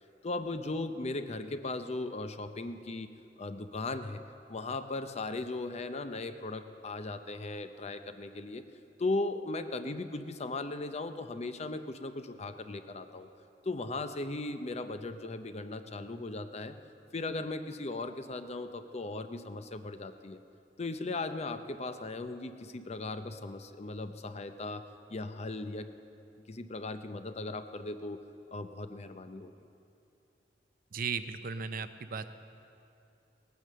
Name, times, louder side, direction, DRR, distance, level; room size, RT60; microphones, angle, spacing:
voice 1, 0.2-4.2 4.5-8.6 9.0-13.3 13.6-16.8 17.1-20.4 20.8-24.8 25.1-25.9 26.5-28.2 28.5-29.5, left 2 dB, 40° left, 9 dB, 0.6 m, -37 dB
voice 2, 30.9-32.3, right 6 dB, 55° right, 11 dB, 0.6 m, -36 dB
18.0 x 9.3 x 6.8 m, 2.7 s
head